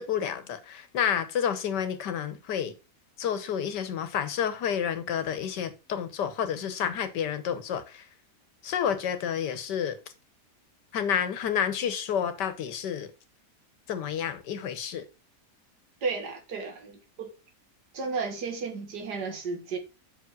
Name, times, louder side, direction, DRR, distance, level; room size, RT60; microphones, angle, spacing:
voice 1, 0.0-2.7 3.2-8.1 8.6-10.0 10.9-13.1 13.9-15.0, left 8 dB, 85° left, 1.7 m, -30 dB
voice 2, 16.0-17.3 17.9-19.8, right 4 dB, 75° right, 2.2 m, -33 dB
6.4 x 5.1 x 5.3 m
omnidirectional pair, 1.8 m